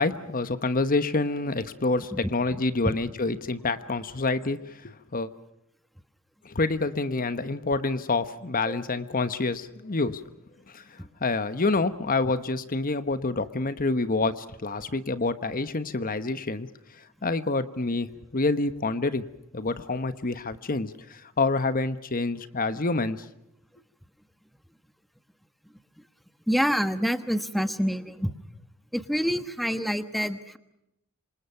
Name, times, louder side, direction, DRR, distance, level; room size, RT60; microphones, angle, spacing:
voice 1, 0.0-5.3 6.4-10.2 10.7-16.7 17.2-19.2 19.5-23.2, left 3 dB, 45° left, 12 dB, 1.2 m, -27 dB
voice 2, 26.5-28.3 28.9-30.6, equal, ahead, 10 dB, 1.4 m, -27 dB
27.0 x 26.5 x 5.8 m, 0.83 s
head